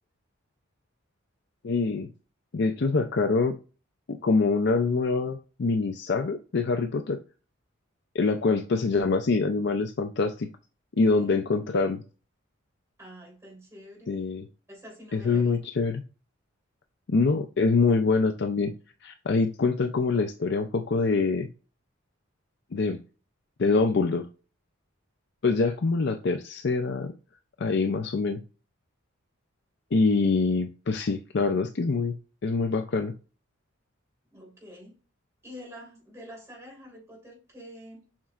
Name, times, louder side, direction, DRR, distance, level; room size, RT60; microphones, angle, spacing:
voice 1, 1.6-2.1 2.5-3.5 4.1-7.2 8.1-10.5 11.0-12.0 14.1-14.5 15.1-16.0 17.1-18.7 19.0-21.5 22.7-23.0 23.6-24.3 25.4-27.1 27.6-28.4 29.9-32.2 32.4-33.1, left 4 dB, 55° left, 0.5 m, -25 dB
voice 2, 13.0-14.1 14.7-15.6 34.3-34.9 35.4-38.0, equal, 15° right, 3.4 m, -46 dB
7.3 x 5.7 x 2.4 m
head